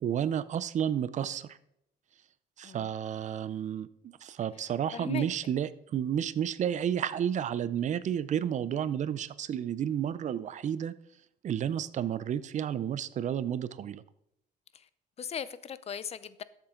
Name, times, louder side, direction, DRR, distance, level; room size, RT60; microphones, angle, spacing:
voice 1, 0.0-1.6 2.6-10.9 11.4-14.0, right 9 dB, 45° right, 17 dB, 0.6 m, -31 dB
voice 2, 4.9-5.3 14.7-14.9 15.2-16.4, left 8 dB, 40° left, 16 dB, 0.6 m, -38 dB
13.0 x 7.3 x 3.8 m, 0.78 s
cardioid pair, 110°, 17 cm